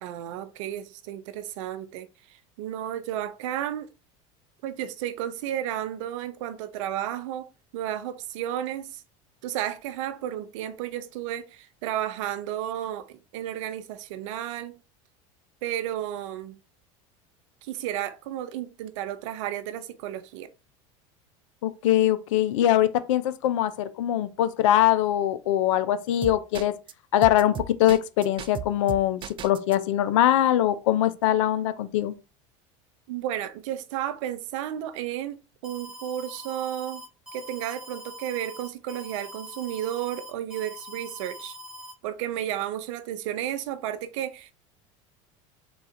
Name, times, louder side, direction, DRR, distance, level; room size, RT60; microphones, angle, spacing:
voice 1, 0.0-3.9 4.6-7.5 7.7-9.0 9.4-14.8 15.6-16.6 17.6-20.5 33.1-37.0 37.3-41.6 42.0-44.5, right 11 dB, 80° right, 0.6 m, -33 dB
voice 2, 21.6-26.8 27.1-32.1, left 12 dB, 90° left, 0.5 m, -22 dB
sound 1, 26.2-26.9 27.2-29.8, right 8 dB, 30° right, 0.4 m, -35 dB
Alarm, 35.6-41.9, equal, 5° right, 1.0 m, -43 dB
3.8 x 2.4 x 4.2 m
supercardioid pair, 115°, 16 cm